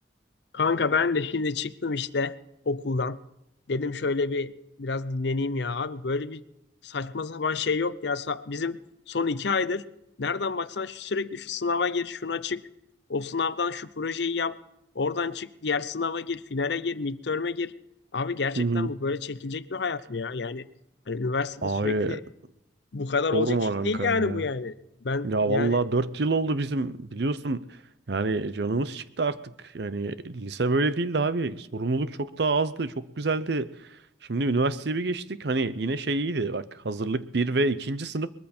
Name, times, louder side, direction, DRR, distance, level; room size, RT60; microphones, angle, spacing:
voice 1, 0.5-2.4 2.7-3.2 3.7-4.5 4.8-6.4 6.8-8.8 9.1-9.8 10.2-12.6 13.1-14.6 14.9-17.7 18.1-20.6 21.1-22.2 22.9-23.6 23.8-24.8 25.0-25.8, left 4 dB, 60° left, 15 dB, 0.7 m, -28 dB
voice 2, 18.6-18.9 21.6-22.2 23.3-24.4 25.2-27.6 28.1-29.4 29.7-33.7 34.3-38.3, right 3 dB, 60° right, 15 dB, 0.7 m, -27 dB
21.0 x 14.0 x 4.4 m, 0.84 s
head